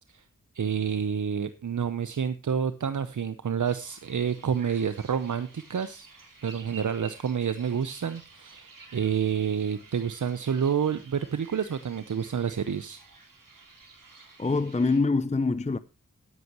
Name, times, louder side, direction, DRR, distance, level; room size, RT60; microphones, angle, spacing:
voice 1, 0.5-6.1 6.4-13.0, right 7 dB, 65° right, 0.8 m, -29 dB
sound 1, 3.6-15.0, right 4 dB, 90° right, 3.6 m, -51 dB
voice 2, 14.4-15.8, left 3 dB, 20° left, 0.6 m, -25 dB
14.0 x 11.0 x 3.0 m
wide cardioid pair, 75°, 32 cm